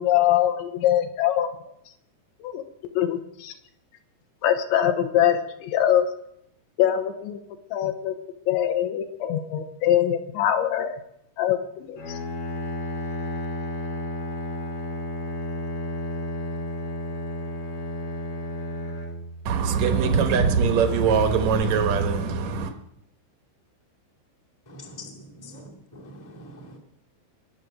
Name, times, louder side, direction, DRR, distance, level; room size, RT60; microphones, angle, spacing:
voice 1, 0.0-1.5 2.4-2.6 2.9-3.5 4.4-6.1 6.8-7.4 7.7-8.1 8.5-11.0 11.4-12.2, left 11 dB, 80° left, 3.3 m, -23 dB
Bowed string instrument, 12.0-19.9, left 1 dB, 55° left, 1.5 m, -32 dB
voice 2, 19.4-22.7, right 5 dB, 85° right, 1.6 m, -22 dB
voice 3, 24.6-25.7 25.9-26.8, left 1 dB, 25° left, 0.4 m, -43 dB
22.0 x 7.5 x 6.5 m
omnidirectional pair, 5.4 m